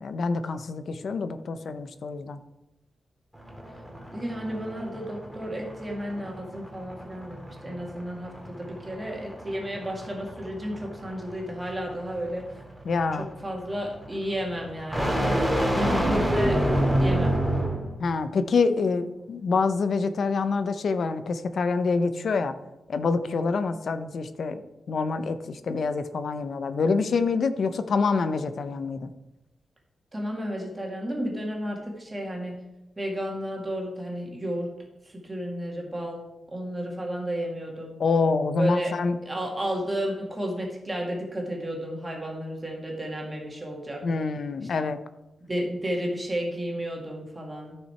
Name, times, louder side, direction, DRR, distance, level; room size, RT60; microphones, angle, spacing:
voice 1, 0.0-2.4 12.9-13.3 18.0-22.5 22.9-24.6 24.9-29.1 38.0-39.2 44.0-45.0, left 4 dB, 60° left, 10 dB, 0.7 m, -26 dB
sound 1, 3.3-17.9, right 1 dB, ahead, 2.1 m, -29 dB
voice 2, 4.1-12.5 13.1-15.4 15.7-16.6 17.0-17.4 30.1-32.6 33.0-34.7 35.1-36.2 36.5-38.0 38.6-38.9 39.2-44.0 45.5-47.8, equal, 20° right, -1 dB, 2.1 m, -32 dB
13.5 x 5.8 x 4.4 m, 0.97 s
wide cardioid pair, 130°, 0 cm